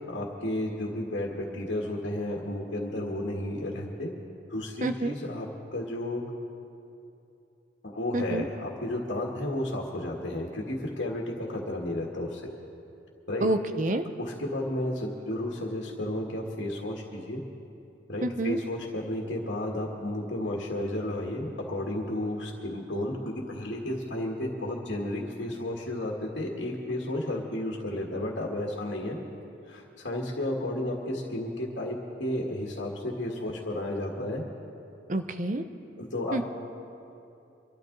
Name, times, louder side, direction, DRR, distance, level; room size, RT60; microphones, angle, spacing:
voice 1, 0.1-4.1 4.5-6.2 7.8-12.5 13.3-13.5 14.2-17.4 18.1-29.2 29.7-34.4 36.0-36.4, left 1 dB, 70° left, -2 dB, 1.8 m, -32 dB
voice 2, 4.8-5.1 8.1-8.5 13.4-14.1 18.2-18.6 35.1-35.6 36.3-36.4, right 2 dB, 40° right, 8 dB, 0.7 m, -28 dB
24.5 x 12.5 x 4.0 m, 2.8 s
head